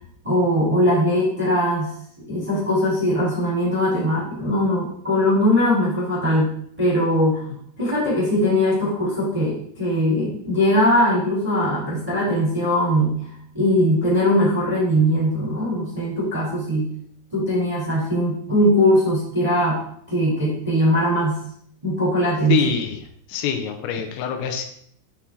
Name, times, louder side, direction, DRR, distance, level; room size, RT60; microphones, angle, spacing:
voice 1, 0.2-2.0 2.3-7.5 7.8-13.2 13.5-16.9 17.3-21.4 21.8-22.6, equal, 10° right, -7 dB, 1.8 m, -20 dB
voice 2, 22.5-23.0 23.3-24.7, left 8 dB, 85° left, 6 dB, 3.5 m, -24 dB
9.9 x 5.9 x 3.7 m, 0.65 s
omnidirectional pair, 5.8 m